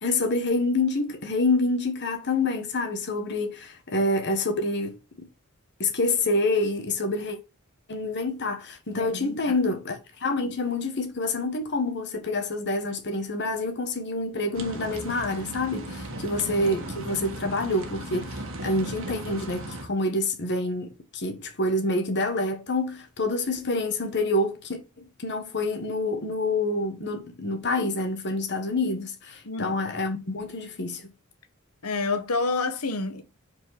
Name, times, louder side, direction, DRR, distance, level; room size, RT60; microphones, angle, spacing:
voice 1, 0.0-4.9 5.8-7.4 7.9-31.1, left 2 dB, 55° left, 1.4 m, -27 dB
voice 2, 8.9-9.4 29.4-29.8 31.8-33.2, left 3 dB, 90° left, 1.1 m, -29 dB
sound 1, 14.5-19.9, right 1 dB, 65° right, 1.5 m, -36 dB
5.4 x 4.6 x 5.8 m
head